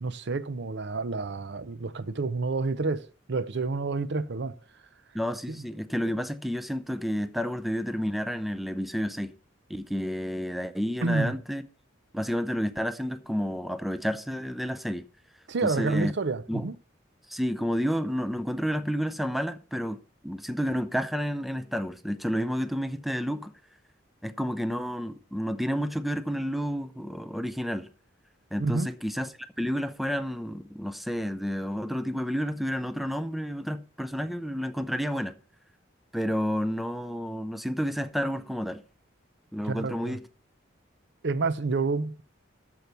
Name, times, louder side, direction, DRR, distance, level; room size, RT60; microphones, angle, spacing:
voice 1, 0.0-4.5 5.5-5.6 11.0-11.3 15.5-16.7 28.6-28.9 39.6-40.2 41.2-42.2, right 3 dB, 55° right, 0.6 m, -29 dB
voice 2, 5.1-9.3 9.7-11.6 12.1-15.1 15.6-16.1 16.5-16.7 17.3-20.0 20.2-23.5 24.2-27.9 28.5-35.4 36.1-38.8 39.5-40.3, equal, ahead, 0.5 m, -30 dB
13.5 x 4.6 x 6.7 m
head